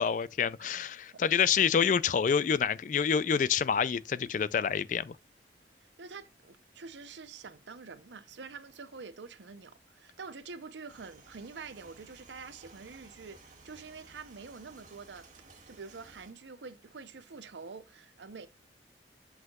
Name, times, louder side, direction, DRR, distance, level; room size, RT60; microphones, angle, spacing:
voice 1, 0.0-5.2, left 7 dB, 45° left, 0.3 m, -27 dB
voice 2, 5.8-15.3 15.7-18.5, right 4 dB, 80° right, 0.7 m, -46 dB
sound 1, 10.9-16.3, right 3 dB, 45° right, 1.5 m, -56 dB
7.8 x 5.7 x 2.3 m
head